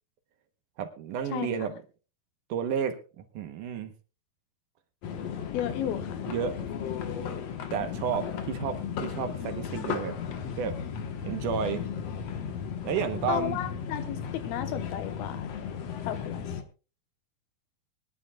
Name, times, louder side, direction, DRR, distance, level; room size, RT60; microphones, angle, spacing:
voice 1, 0.8-1.7 2.5-3.9 6.3-6.6 7.7-10.2 10.6-10.8 11.2-11.8 12.8-13.6, right 7 dB, 70° right, 8 dB, 2.4 m, -31 dB
voice 2, 1.3-1.7 5.5-6.2 13.3-15.5 16.0-16.5, left 11 dB, 85° left, 10 dB, 3.0 m, -33 dB
sound 1, 5.0-16.6, left 7 dB, 60° left, 1.9 m, -35 dB
22.5 x 11.0 x 2.3 m, 0.33 s
omnidirectional pair, 4.3 m